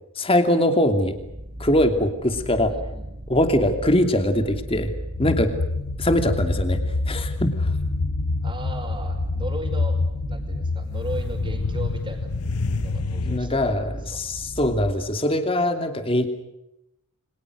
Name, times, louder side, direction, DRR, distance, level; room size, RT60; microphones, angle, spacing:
voice 1, 0.2-1.2 1.6-2.7 3.3-4.9 5.2-5.5 6.0-6.8 7.1-7.7 13.2-16.3, left 1 dB, 25° left, 7 dB, 2.9 m, -22 dB
sound 1, 1.0-14.9, equal, 40° right, 3.5 m, -35 dB
voice 2, 2.7-3.1 8.4-10.0 10.3-12.3 12.8-14.2, right 1 dB, 20° right, 5 dB, 5.3 m, -37 dB
sound 2, 5.1-13.4, left 3 dB, 80° left, 0.9 m, -27 dB
29.0 x 25.5 x 6.5 m, 0.88 s
head